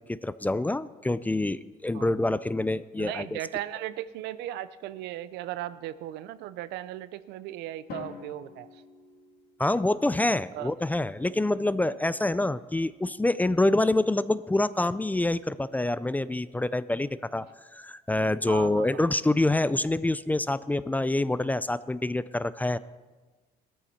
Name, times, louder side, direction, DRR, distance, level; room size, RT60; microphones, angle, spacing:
voice 1, 0.1-3.4 9.6-17.5 17.7-22.8, left 2 dB, 10° left, 16 dB, 0.4 m, -26 dB
voice 2, 3.0-8.8 10.5-10.7 18.5-19.0, right 13 dB, 90° right, 15 dB, 0.6 m, -37 dB
Drum, 7.9-9.9, left 6 dB, 65° left, 2.1 m, -45 dB
17.5 x 13.5 x 4.3 m, 1.3 s
cardioid pair, 110°, 17 cm